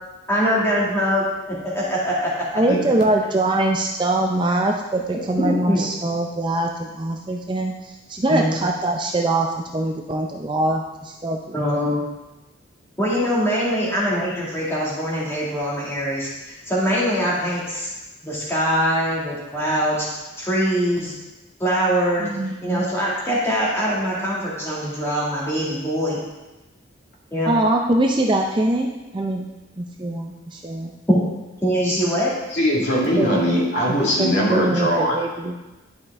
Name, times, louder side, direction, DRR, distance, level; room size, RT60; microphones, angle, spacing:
voice 1, 0.3-2.5 5.1-5.8 8.3-8.6 11.5-12.1 13.0-17.9 18.2-20.1 20.4-21.1 21.6-22.3 22.6-26.2 27.3-27.5 31.1-31.2 31.6-32.3, equal, 10° left, -7 dB, 2.0 m, -23 dB
voice 2, 2.5-9.5 9.7-11.4 22.2-22.8 27.5-29.5 29.8-30.9 33.2-33.3 34.2-34.9 35.1-35.5, right 1 dB, 25° right, 1 dB, 0.4 m, -23 dB
voice 3, 32.5-35.2, equal, 55° left, -4 dB, 1.9 m, -20 dB
11.0 x 5.2 x 3.5 m, 1.1 s
head